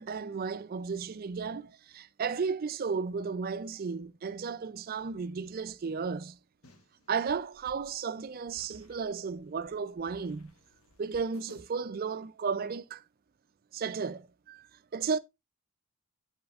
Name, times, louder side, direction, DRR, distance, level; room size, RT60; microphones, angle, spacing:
voice 1, 0.0-6.4 7.1-10.5 11.0-13.0 13.7-14.7 14.9-15.2, right 5 dB, 40° right, 0.4 m, -34 dB
sound 1, 6.6-11.6, left 1 dB, 75° left, 1.3 m, -58 dB
8.6 x 7.9 x 2.4 m
head